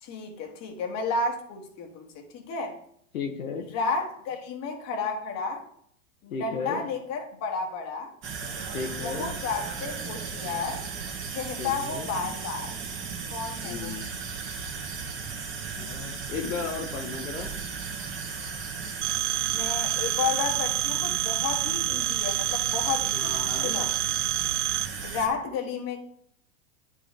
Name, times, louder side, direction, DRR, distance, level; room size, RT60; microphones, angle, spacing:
voice 1, 0.0-2.8 3.7-5.6 6.2-8.1 9.0-10.8 11.3-12.7 13.3-13.9 19.5-23.3 23.6-23.9 25.0-26.0, left 4 dB, 40° left, 3 dB, 1.9 m, -32 dB
voice 2, 3.1-3.7 6.3-6.8 8.7-9.3 11.6-12.1 13.6-14.1 15.8-17.5 23.1-23.7, left 5 dB, 80° left, 2 dB, 1.2 m, -34 dB
sound 1, 8.2-25.3, right 5 dB, 30° right, 1.7 m, -36 dB
Telephone, 19.0-24.9, right 18 dB, 60° right, 0.6 m, -28 dB
9.8 x 4.9 x 3.5 m, 0.67 s
hypercardioid pair, 105°, 40 cm